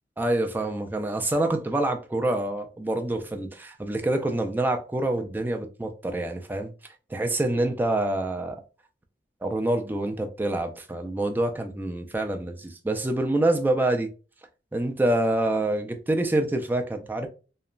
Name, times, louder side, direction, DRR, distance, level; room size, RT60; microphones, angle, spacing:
voice 1, 0.2-6.7 7.1-8.6 9.4-14.1 14.7-17.3, right 1 dB, 10° right, 0.3 m, -26 dB
2.9 x 2.2 x 2.3 m
head